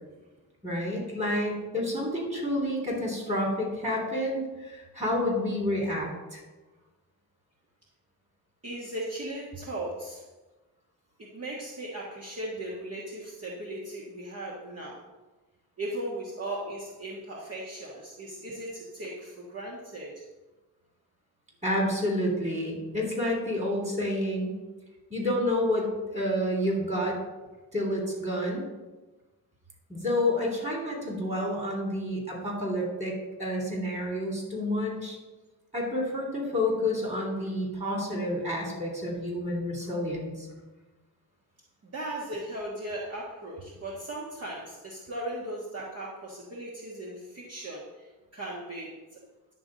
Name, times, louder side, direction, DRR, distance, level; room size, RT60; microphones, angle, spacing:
voice 1, 0.6-6.4 21.6-24.6 25.1-27.2 27.7-28.7 29.9-35.2 35.7-40.5, left 1 dB, 20° right, -1 dB, 3.2 m, -29 dB
voice 2, 8.6-10.2 11.2-15.0 15.8-20.2 37.4-37.5 39.8-39.9 41.8-49.2, right 1 dB, 40° right, -4 dB, 1.5 m, -37 dB
10.5 x 4.0 x 7.4 m, 1.2 s
wide cardioid pair, 125°, 36 cm